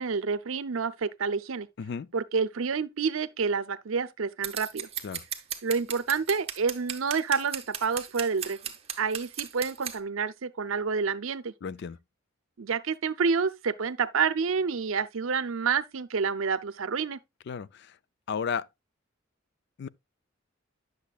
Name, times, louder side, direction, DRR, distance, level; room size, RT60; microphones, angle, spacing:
voice 1, 0.0-1.7 2.1-4.9 5.6-8.6 9.0-11.5 12.6-17.2, right 5 dB, 75° right, 0.6 m, -28 dB
voice 2, 1.8-2.1 5.0-5.2 11.6-12.0 17.5-18.0 18.3-18.7 19.8-19.9, left 6 dB, 55° left, 0.4 m, -33 dB
Scissors, 4.4-10.0, right 9 dB, 30° right, 1.0 m, -36 dB
10.0 x 6.7 x 2.3 m
head